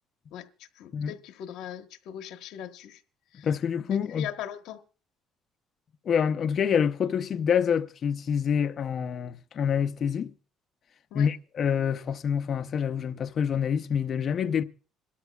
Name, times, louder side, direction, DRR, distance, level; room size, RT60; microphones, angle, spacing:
voice 1, 0.8-3.0 3.3-3.5 3.9-4.8 11.1-11.3, left 10 dB, 80° left, 1.1 m, -39 dB
voice 2, 3.4-4.3 6.0-10.3 11.1-14.6, left 7 dB, 45° left, 0.7 m, -27 dB
26.5 x 13.0 x 2.3 m
cardioid pair, 110°, 0 cm